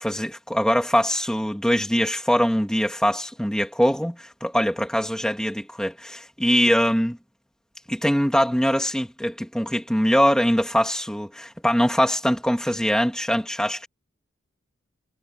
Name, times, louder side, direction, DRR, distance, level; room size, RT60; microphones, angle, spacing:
voice 1, 0.0-7.2 7.9-13.9, equal, 5° left, 2.6 m, -22 dB
head